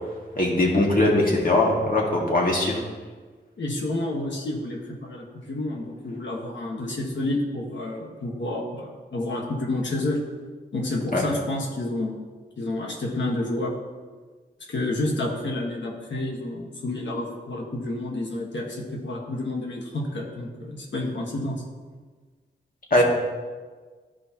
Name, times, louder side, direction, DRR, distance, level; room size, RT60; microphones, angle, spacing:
voice 1, 0.4-2.8 11.1-11.2 22.9-23.0, left 1 dB, 50° left, -2 dB, 2.0 m, -21 dB
voice 2, 3.6-10.2 10.7-12.2 12.6-13.7 14.7-21.6 23.0-23.1, left 2 dB, 80° left, -1 dB, 1.4 m, -29 dB
12.5 x 5.1 x 2.9 m, 1.4 s
cardioid pair, 65°, 19 cm